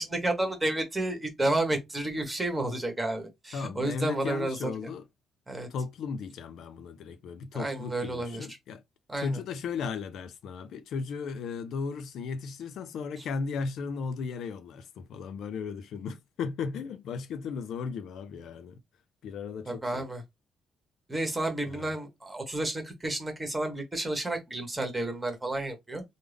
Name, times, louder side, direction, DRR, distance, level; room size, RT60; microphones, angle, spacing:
voice 1, 0.0-4.7 5.5-5.7 7.5-8.5 9.1-9.4 19.7-20.2 21.1-26.0, right 2 dB, 15° right, 1.3 m, -31 dB
voice 2, 3.5-5.1 5.7-8.8 9.2-18.8 19.2-20.1 21.7-21.9, left 5 dB, 75° left, 0.4 m, -36 dB
3.5 x 2.0 x 3.4 m
cardioid pair, 90°, 0 cm